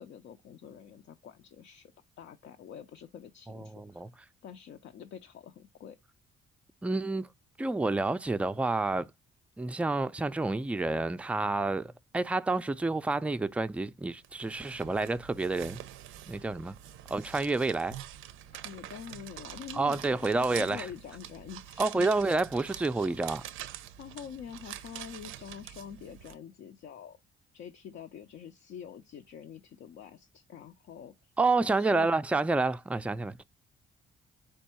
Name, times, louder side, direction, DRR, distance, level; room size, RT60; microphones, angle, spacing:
voice 1, 0.0-1.9 2.2-4.0 4.4-6.0 18.5-21.9 24.0-27.2 27.5-31.1 31.8-32.1, left 8 dB, 70° left, 0.5 m, -46 dB
voice 2, 3.5-4.1 6.8-7.3 7.6-9.1 9.6-15.8 16.3-16.8 17.1-18.0 19.7-20.9 21.8-23.4 31.4-33.4, right 3 dB, 5° right, 0.3 m, -29 dB
sound 1, 14.2-26.4, right 12 dB, 90° right, 0.5 m, -45 dB
4.6 x 2.6 x 4.3 m
cardioid pair, 90°, 20 cm